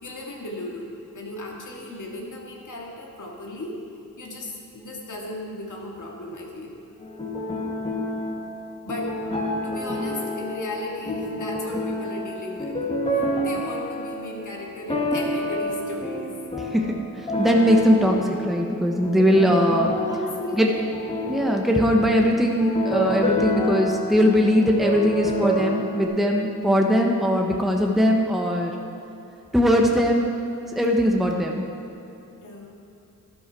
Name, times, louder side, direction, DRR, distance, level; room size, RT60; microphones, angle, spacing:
voice 1, 0.0-3.8 4.2-6.8 8.8-9.2 9.6-16.4 20.0-20.9 32.4-32.8, left 1 dB, 65° left, -1 dB, 2.1 m, -36 dB
sound 1, 7.0-26.0, left 1 dB, 15° left, 1.8 m, -29 dB
voice 2, 16.7-17.1 17.4-18.2 18.4-19.9 20.6-20.7 21.3-28.7 29.5-30.3 30.8-31.6, equal, ahead, 1 dB, 1.0 m, -20 dB
12.5 x 12.0 x 4.6 m, 2.8 s
wide cardioid pair, 135°, 33 cm